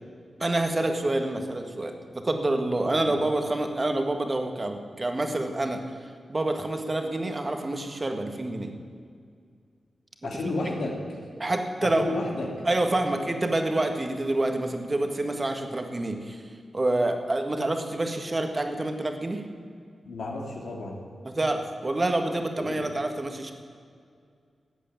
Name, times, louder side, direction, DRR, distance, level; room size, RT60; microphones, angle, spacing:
voice 1, 0.4-8.7 10.5-10.6 11.4-12.1 12.6-19.5 21.2-23.5, right 2 dB, 30° right, 5 dB, 1.7 m, -27 dB
voice 2, 10.2-10.9 11.8-12.5 20.0-21.0 22.6-22.8, left 2 dB, 85° left, -1 dB, 2.5 m, -32 dB
14.0 x 8.4 x 8.6 m, 2.2 s
cardioid pair, 70°, 0 cm